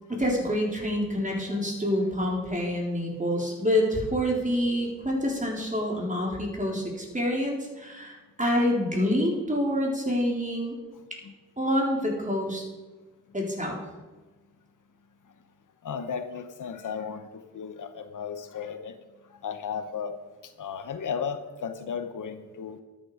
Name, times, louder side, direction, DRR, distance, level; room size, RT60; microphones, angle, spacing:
voice 1, 0.1-10.8 11.6-12.6 13.3-13.8, equal, 25° right, -1 dB, 3.9 m, -27 dB
voice 2, 15.8-18.9 19.4-20.2 20.6-22.8, left 7 dB, 85° left, 9 dB, 0.9 m, -35 dB
13.0 x 9.1 x 4.9 m, 1.2 s
cardioid pair, 45°, 30 cm